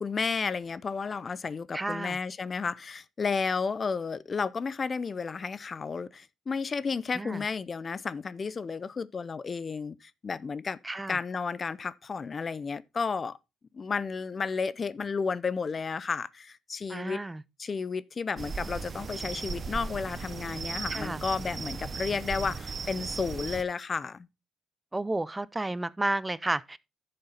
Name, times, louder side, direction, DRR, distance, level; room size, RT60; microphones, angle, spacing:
voice 1, 0.0-10.8 11.1-13.4 13.7-17.2 17.6-24.3, left 5 dB, 40° left, 0.6 m, -32 dB
voice 2, 1.7-2.2 7.2-7.4 10.8-11.2 16.9-17.4 20.9-21.2 24.9-26.8, right 2 dB, 15° right, 0.5 m, -31 dB
sound 1, 18.4-23.6, right 5 dB, 40° right, 0.8 m, -37 dB
11.0 x 6.8 x 3.9 m
cardioid pair, 90°, 0 cm